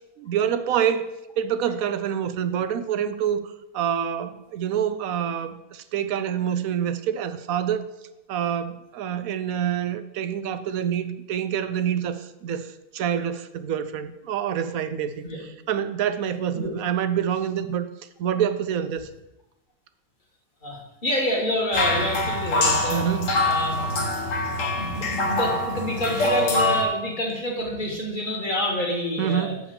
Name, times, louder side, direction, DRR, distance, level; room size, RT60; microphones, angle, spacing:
voice 1, 0.2-1.1 1.4-7.9 8.3-15.2 15.7-17.9 18.2-19.1 22.9-23.3 29.2-29.6, right 9 dB, 70° right, 11 dB, 1.0 m, -26 dB
voice 2, 20.6-23.0 23.4-24.0 24.8-29.5, equal, 30° left, -2 dB, 2.0 m, -28 dB
sound 1, 21.7-26.8, left 2 dB, 60° left, 1.4 m, -24 dB
7.1 x 4.8 x 7.0 m, 0.94 s
omnidirectional pair, 1.6 m